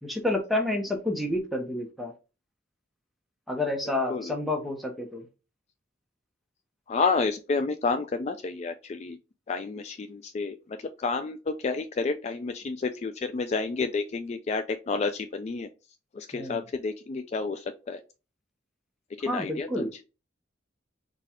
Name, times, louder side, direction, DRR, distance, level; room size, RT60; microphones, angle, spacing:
voice 1, 0.0-2.1 3.5-5.2 16.3-16.6 19.3-19.9, left 1 dB, ahead, 2 dB, 0.9 m, -29 dB
voice 2, 3.8-4.4 6.9-9.2 9.5-15.7 16.1-18.0 19.2-20.0, left 4 dB, 40° left, 7 dB, 0.3 m, -30 dB
4.0 x 2.4 x 4.2 m, 0.30 s
head